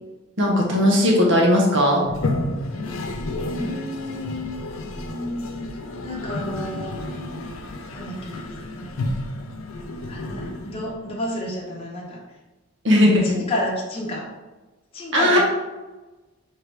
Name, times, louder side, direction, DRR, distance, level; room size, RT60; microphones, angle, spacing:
voice 1, 0.4-2.0 12.8-13.4 15.1-15.4, left 1 dB, 60° right, -1 dB, 1.1 m, -17 dB
Toilet flush, 2.0-11.1, left 2 dB, 75° left, 0.5 m, -31 dB
voice 2, 3.5-5.7 6.0-7.0 7.9-8.5 8.7-9.1 10.1-12.2 13.2-14.3 14.9-15.4, left 1 dB, 30° left, -3 dB, 0.8 m, -31 dB
4.5 x 3.3 x 3.4 m, 1.2 s
head